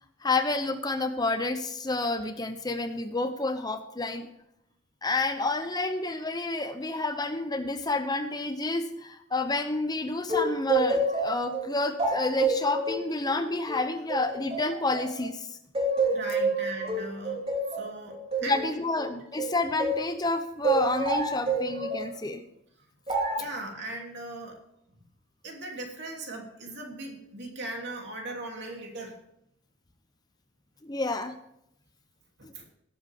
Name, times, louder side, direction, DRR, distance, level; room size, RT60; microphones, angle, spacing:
voice 1, 0.2-4.3 5.0-15.5 18.4-22.4 30.8-31.3 32.4-32.5, left 2 dB, 20° left, 9 dB, 0.7 m, -29 dB
sound 1, 10.3-15.3 15.7-20.1 20.6-22.1 23.1-23.5, right 2 dB, 30° right, 3.1 m, -28 dB
voice 2, 16.1-17.4 17.7-18.6 23.3-24.6 25.4-29.2 32.4-32.7, right 2 dB, 55° right, 1 dB, 3.0 m, -39 dB
18.0 x 7.9 x 3.6 m, 0.78 s
head